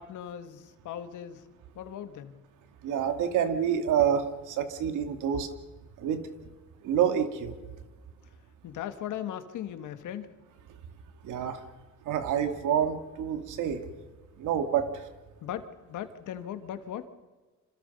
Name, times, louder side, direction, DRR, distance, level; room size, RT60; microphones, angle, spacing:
voice 1, 0.0-1.5 1.8-2.4 8.6-10.3 15.4-17.1, left 10 dB, 80° left, 9 dB, 1.8 m, -38 dB
voice 2, 2.8-5.5 6.0-6.2 6.8-7.5 11.2-11.6 12.1-13.9 14.4-15.1, right 8 dB, 90° right, 7 dB, 2.3 m, -28 dB
27.5 x 26.5 x 5.4 m, 1.3 s
cardioid pair, 90°, 30 cm